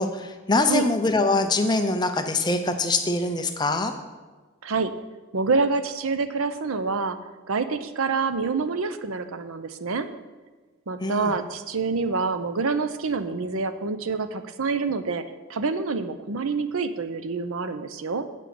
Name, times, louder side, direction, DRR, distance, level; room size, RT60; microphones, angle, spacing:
voice 1, 0.0-3.9 11.0-11.4, left 2 dB, 20° left, 6 dB, 0.6 m, -24 dB
voice 2, 5.3-7.2 7.5-10.1 10.9-15.2 15.5-18.3, right 4 dB, 75° right, 10 dB, 0.7 m, -27 dB
8.2 x 6.1 x 7.6 m, 1.3 s
head